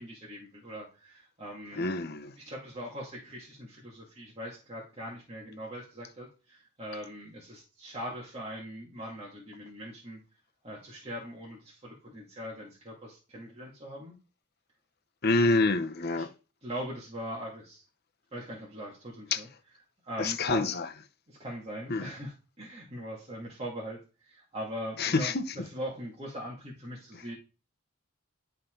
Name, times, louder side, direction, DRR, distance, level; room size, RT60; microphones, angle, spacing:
voice 1, 0.0-1.9 2.4-10.2 10.6-14.1 16.2-16.3 16.6-17.8 18.3-19.5 20.0-20.7 21.3-27.4, equal, 30° right, 2.2 m, -41 dB
voice 2, 1.7-2.3 15.2-16.3 19.3-19.4 20.2-20.9 21.9-22.1 25.0-25.4, left 3 dB, 50° left, 0.8 m, -27 dB
11.5 x 4.9 x 3.8 m
head